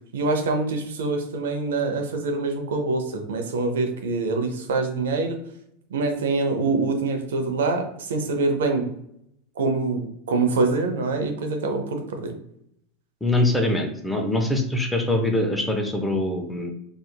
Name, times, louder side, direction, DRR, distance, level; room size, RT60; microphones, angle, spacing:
voice 1, 0.1-5.4 5.9-8.9 9.6-12.3, right 3 dB, 85° right, 5 dB, 0.5 m, -25 dB
voice 2, 13.2-16.7, left 1 dB, 5° left, 3 dB, 0.5 m, -23 dB
2.8 x 2.4 x 2.2 m, 0.74 s
hypercardioid pair, 110°, 0 cm